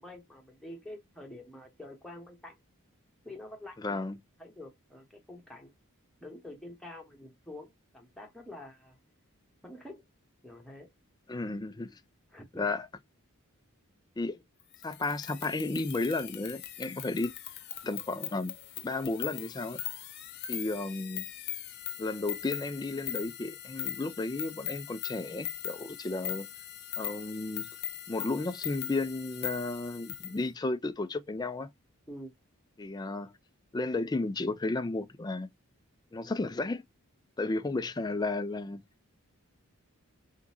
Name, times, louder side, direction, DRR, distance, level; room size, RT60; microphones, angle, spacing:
voice 1, 0.0-2.6 3.2-4.0 4.4-5.7 6.2-9.0 9.6-10.1 10.4-10.9 12.3-12.7 32.1-32.3, left 1 dB, ahead, 1.2 m, -47 dB
voice 2, 3.8-4.2 11.3-12.0 12.6-12.9 14.2-14.4 14.8-17.3 17.8-18.5 18.8-19.8 20.5-21.2 22.0-26.5 27.0-27.7 28.1-31.7 32.8-33.3 33.7-35.5 36.1-36.8 37.4-38.8, left 2 dB, 20° left, 0.4 m, -33 dB
sound 1, 14.7-30.4, left 11 dB, 50° left, 0.8 m, -40 dB
3.9 x 3.6 x 2.9 m
head